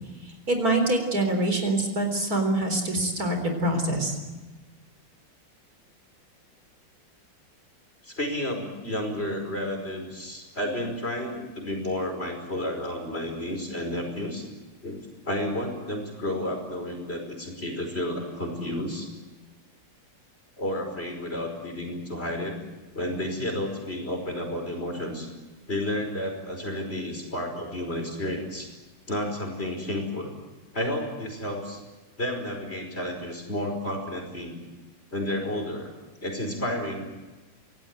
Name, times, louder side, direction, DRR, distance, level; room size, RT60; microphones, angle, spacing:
voice 1, 0.5-4.2, right 2 dB, 45° right, 5 dB, 4.5 m, -25 dB
voice 2, 8.0-14.4 14.8-15.0 15.3-19.1 20.6-22.5 22.9-25.3 25.7-28.7 29.1-30.3 30.7-31.8 32.2-34.5 35.1-35.9 36.2-37.3, left 1 dB, 30° left, 3 dB, 5.4 m, -31 dB
27.0 x 18.5 x 9.3 m, 1.2 s
omnidirectional pair, 2.1 m